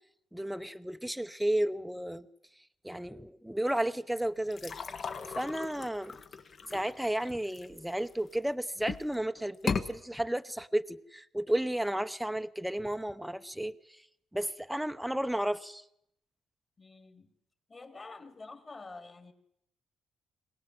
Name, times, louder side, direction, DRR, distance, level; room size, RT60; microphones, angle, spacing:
voice 1, 0.3-2.3 2.8-4.8 5.4-6.2 6.7-14.0 14.3-15.8, right 1 dB, 5° right, 0.8 m, -33 dB
sound 1, 4.5-8.3 8.8-9.2 9.5-9.9, left 5 dB, 50° left, 1.6 m, -37 dB
voice 2, 16.8-17.4 17.7-19.3, left 3 dB, 30° left, 3.1 m, -48 dB
22.0 x 18.5 x 7.8 m
cardioid pair, 90°, 0 cm